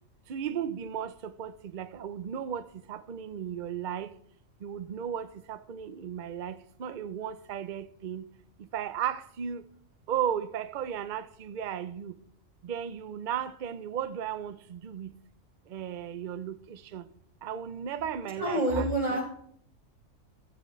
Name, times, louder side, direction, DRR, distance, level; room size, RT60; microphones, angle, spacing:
voice 1, 0.3-4.1 4.6-8.3 8.7-9.6 10.1-12.1 12.6-15.1 15.7-17.1 17.4-19.2, right 9 dB, 50° right, 0.6 m, -35 dB
voice 2, 18.4-19.2, right 1 dB, 25° right, 5.3 m, -27 dB
14.5 x 13.5 x 3.2 m
omnidirectional pair, 1.4 m